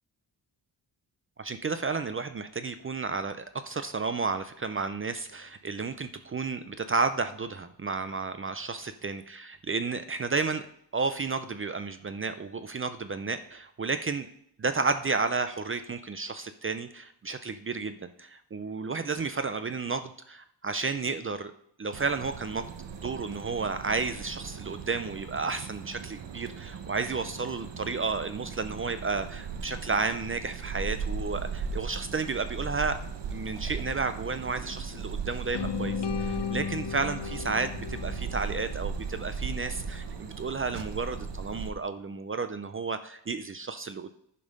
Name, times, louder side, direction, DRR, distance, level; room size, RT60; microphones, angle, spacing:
voice 1, 1.4-10.6 10.9-14.3 14.6-21.5 21.8-22.7 23.0-33.0 33.3-44.1, right 4 dB, 30° right, 10 dB, 0.4 m, -32 dB
sound 1, 21.9-41.7, right 5 dB, 75° right, 1.1 m, -38 dB
sound 2, 35.5-39.6, left 7 dB, 75° left, 0.6 m, -35 dB
10.5 x 5.4 x 5.2 m, 0.69 s
wide cardioid pair, 155°, 43 cm